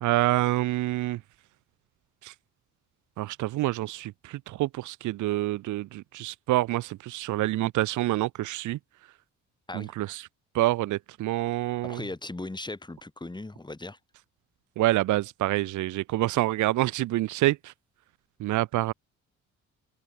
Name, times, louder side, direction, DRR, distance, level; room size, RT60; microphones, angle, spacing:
voice 1, 0.0-1.2 2.2-2.3 3.2-8.8 9.7-10.3 10.5-12.0 14.8-17.7 18.4-18.9, right 16 dB, 75° right, 0.7 m, -27 dB
voice 2, 11.8-14.0, left 2 dB, 15° left, 6.4 m, -38 dB
cardioid pair, 90°, 30 cm